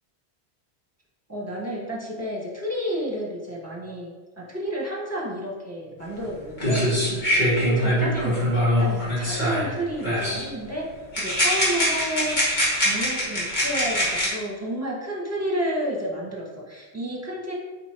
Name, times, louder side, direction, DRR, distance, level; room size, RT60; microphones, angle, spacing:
voice 1, 1.3-6.9 7.6-10.9 11.2-12.4 12.7-17.5, equal, 15° right, -3 dB, 1.6 m, -31 dB
sound 1, 6.2-6.3 6.6-9.7 10.0-10.5 11.1-14.3, equal, 45° left, 2.3 m, -23 dB
8.3 x 4.8 x 3.1 m, 1.3 s
omnidirectional pair, 1.1 m